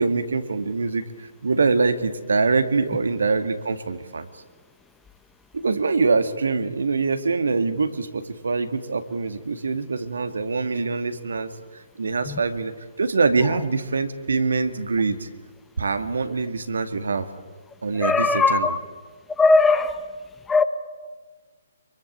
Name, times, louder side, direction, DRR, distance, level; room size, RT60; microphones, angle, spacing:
voice 1, 0.0-4.3 5.5-12.7 13.0-15.3 15.8-17.3 17.8-18.7, right 4 dB, 70° right, 9 dB, 2.1 m, -24 dB
voice 2, 18.0-18.8 19.4-20.1 20.5-20.6, left 3 dB, 10° left, 11 dB, 1.2 m, -19 dB
25.5 x 23.5 x 8.8 m, 1.4 s
figure-of-eight pair, 130°, 0 cm